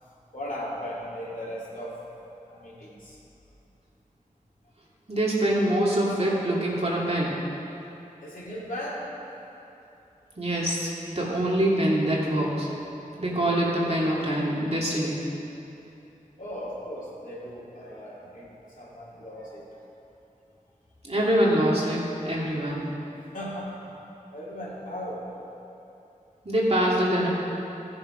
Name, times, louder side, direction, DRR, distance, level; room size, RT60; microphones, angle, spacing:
voice 1, 0.0-3.2 8.2-9.2 16.4-19.8 23.3-23.9 24.3-25.3, equal, 65° left, -7 dB, 2.9 m, -37 dB
voice 2, 5.1-7.4 10.4-12.7 13.2-15.2 21.0-22.8 26.4-27.3, right 1 dB, 45° right, -5 dB, 2.6 m, -24 dB
15.0 x 7.1 x 5.0 m, 2.9 s
wide cardioid pair, 40°, 15 cm